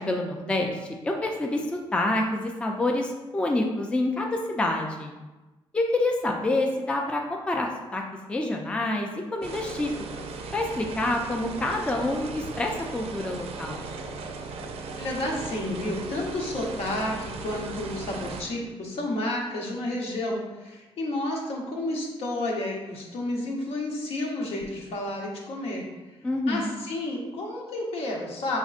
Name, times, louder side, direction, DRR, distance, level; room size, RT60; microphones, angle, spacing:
voice 1, 0.0-5.1 5.7-8.0 8.3-9.9 10.2-13.9 26.2-26.7, left 2 dB, 10° left, 2 dB, 0.3 m, -27 dB
sound 1, 9.4-18.4, right 4 dB, 75° right, 0.5 m, -37 dB
voice 2, 15.0-25.8 26.5-28.6, left 1 dB, 75° left, -1 dB, 0.9 m, -31 dB
5.2 x 3.5 x 2.4 m, 1.1 s
wide cardioid pair, 155°, 10 cm